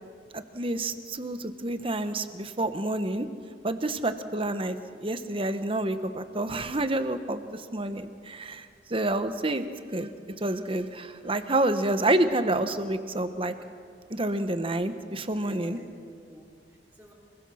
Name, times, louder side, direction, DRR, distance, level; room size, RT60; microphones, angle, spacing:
voice 1, 0.3-3.3 3.6-9.7 9.9-10.1 10.4-13.5 14.1-15.8, right 1 dB, 30° right, 9 dB, 1.1 m, -28 dB
voice 2, 15.3-17.1, equal, 10° right, -4 dB, 3.4 m, -51 dB
25.5 x 22.0 x 6.4 m, 2.2 s
head